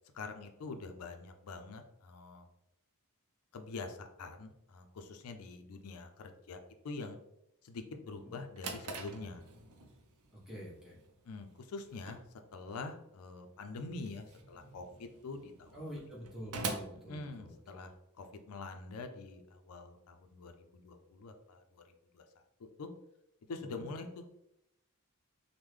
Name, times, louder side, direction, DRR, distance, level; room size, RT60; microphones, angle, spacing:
voice 1, 0.1-2.5 3.5-6.6 6.8-7.2 7.6-9.4 11.2-12.2 12.5-15.8 17.1-22.2 22.6-22.9 23.5-24.3, left 3 dB, 80° left, 7 dB, 0.4 m, -45 dB
Drawer open or close, 8.2-18.0, right 3 dB, 85° right, 0.5 m, -46 dB
voice 2, 10.3-11.0 15.7-17.8 23.6-23.7, equal, ahead, -6 dB, 1.0 m, -47 dB
3.6 x 2.1 x 3.1 m, 0.83 s
head